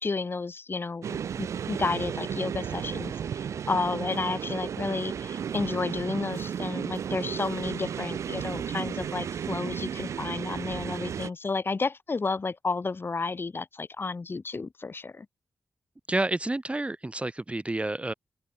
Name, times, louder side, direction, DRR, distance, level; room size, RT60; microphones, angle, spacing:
voice 1, 0.0-3.1 3.7-15.3, left 4 dB, 50° left, 3.3 m, -31 dB
sound 1, 1.0-11.3, right 8 dB, 85° right, 2.4 m, -34 dB
voice 2, 16.1-18.1, right 2 dB, 25° right, 1.6 m, -29 dB
open air
cardioid pair, 45°, 5 cm